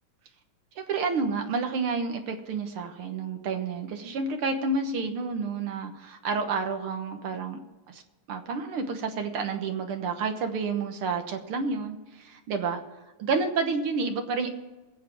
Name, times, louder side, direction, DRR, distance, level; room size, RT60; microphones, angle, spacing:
voice 1, 0.8-7.6 7.9-8.0 8.3-12.8 13.2-14.5, right 4 dB, 55° right, 6 dB, 1.7 m, -30 dB
22.0 x 7.6 x 4.5 m, 1.2 s
omnidirectional pair, 3.5 m